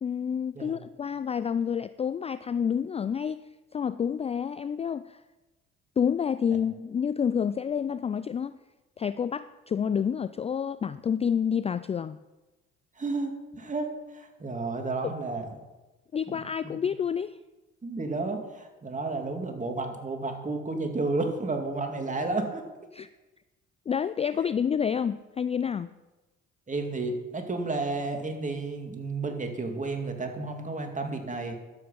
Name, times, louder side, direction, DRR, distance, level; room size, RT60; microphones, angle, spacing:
voice 1, 0.0-3.4 3.7-5.2 6.0-8.5 9.0-12.2 15.0-15.1 16.1-17.4 22.9-23.1 23.9-25.9, left 7 dB, 20° left, 14 dB, 0.3 m, -29 dB
voice 2, 13.0-13.9 14.1-15.5 16.3-16.7 17.8-22.6 26.7-31.6, right 3 dB, 25° right, 4 dB, 2.5 m, -32 dB
12.5 x 7.9 x 5.9 m, 1.1 s
hypercardioid pair, 65°, 29 cm